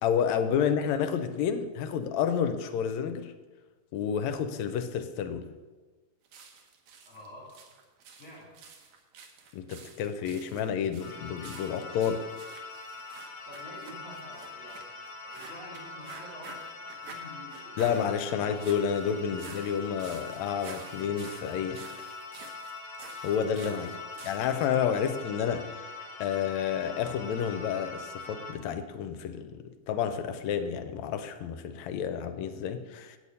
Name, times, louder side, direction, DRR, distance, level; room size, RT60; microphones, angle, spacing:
voice 1, 0.0-3.3 3.9-5.5 9.5-12.2 17.8-21.9 23.2-23.9 24.2-25.8 26.2-33.2, left 8 dB, 80° left, 9 dB, 1.9 m, -30 dB
sound 1, 6.2-24.6, right 5 dB, 75° right, 2.5 m, -50 dB
voice 2, 7.0-7.6 8.1-8.6 12.0-12.2 13.4-18.5 23.9-24.1, equal, 25° left, -6 dB, 3.3 m, -49 dB
sound 2, 11.0-28.5, left 3 dB, 50° left, 1.8 m, -43 dB
9.0 x 7.9 x 5.4 m, 1.3 s
omnidirectional pair, 3.4 m